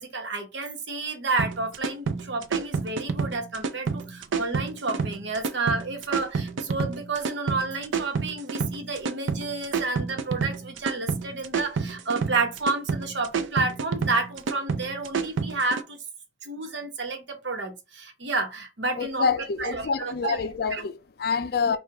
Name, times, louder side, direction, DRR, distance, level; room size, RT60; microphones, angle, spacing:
voice 1, 0.0-16.0 16.4-19.2 19.6-20.4 20.7-20.8 21.7-21.8, right 3 dB, 70° right, 1.0 m, -30 dB
sound 1, 1.4-15.8, right 5 dB, 90° right, 0.5 m, -29 dB
voice 2, 19.0-21.8, left 5 dB, 55° left, 0.4 m, -27 dB
4.7 x 2.4 x 3.5 m
head